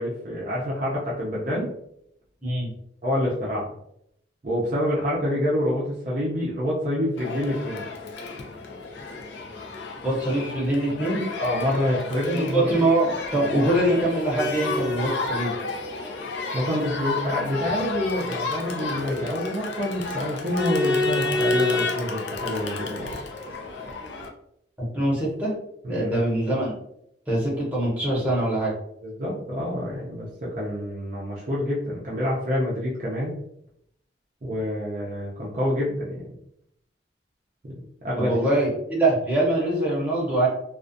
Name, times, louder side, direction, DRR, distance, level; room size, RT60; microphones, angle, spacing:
voice 1, 0.0-1.7 3.0-3.7 4.4-7.8 11.4-12.6 16.5-23.1 25.8-26.1 29.0-33.3 34.4-36.3 38.0-38.5, equal, 40° right, -5 dB, 0.5 m, -27 dB
voice 2, 2.4-2.7 10.0-11.3 12.3-15.5 24.9-25.5 25.9-26.7 27.3-28.7 38.2-40.5, right 1 dB, 10° right, -7 dB, 0.8 m, -23 dB
Crowd, 7.2-24.3, left 3 dB, 75° left, 0.4 m, -30 dB
2.4 x 2.3 x 2.5 m, 0.73 s
head